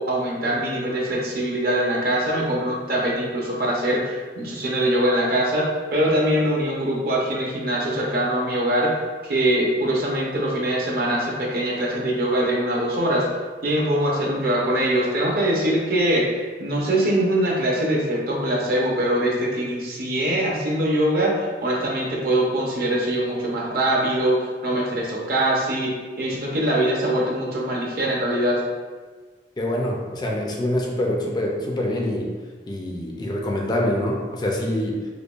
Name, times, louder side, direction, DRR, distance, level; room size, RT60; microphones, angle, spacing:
voice 1, 0.0-8.9 9.2-13.3 13.6-28.6, right 1 dB, 55° right, -3 dB, 0.7 m, -23 dB
voice 2, 29.6-32.3 32.7-35.0, left 1 dB, 25° left, -1 dB, 0.4 m, -25 dB
5.0 x 2.1 x 2.4 m, 1.4 s
head